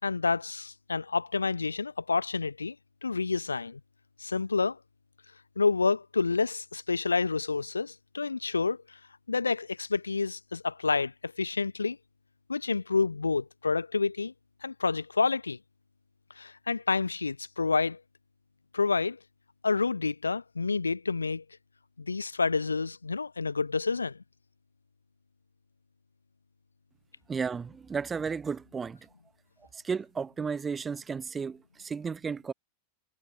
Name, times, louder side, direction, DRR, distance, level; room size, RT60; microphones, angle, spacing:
voice 1, 0.0-2.8 3.0-3.8 4.2-4.8 5.6-9.0 9.3-12.0 12.5-14.3 14.6-15.6 16.4-18.0 18.7-19.2 19.6-21.4 22.0-24.2, left 4 dB, 75° left, 4.3 m, -29 dB
voice 2, 27.3-29.0 29.8-32.5, right 5 dB, 15° right, 3.4 m, -33 dB
figure-of-eight pair, 90°, 0 cm